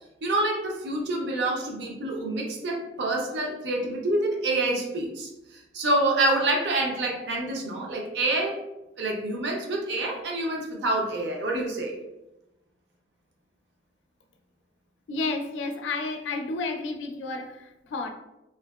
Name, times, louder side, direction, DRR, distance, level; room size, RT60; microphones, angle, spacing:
voice 1, 0.2-5.3 5.7-8.6 9.0-12.0, right 2 dB, 70° right, 0 dB, 0.5 m, -27 dB
voice 2, 15.1-18.1, left 3 dB, 85° left, 5 dB, 0.4 m, -31 dB
2.8 x 2.5 x 2.2 m, 0.95 s
head